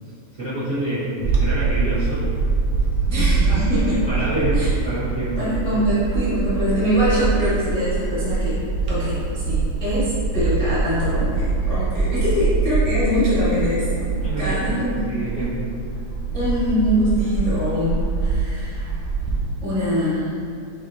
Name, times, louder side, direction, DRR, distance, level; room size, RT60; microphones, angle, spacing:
voice 1, 0.4-2.3 2.9-5.5 14.2-15.7 16.3-16.5, right 1 dB, 50° right, -13 dB, 0.9 m, -28 dB
Bird / Wind, 1.2-19.5, right 4 dB, 70° right, 1.8 m, -23 dB
voice 2, 3.1-4.0 4.5-4.7 5.4-8.6 8.9-15.0 16.3-18.9 19.6-20.3, equal, 35° left, -14 dB, 0.6 m, -23 dB
7.4 x 2.5 x 2.7 m, 2.4 s
omnidirectional pair, 3.3 m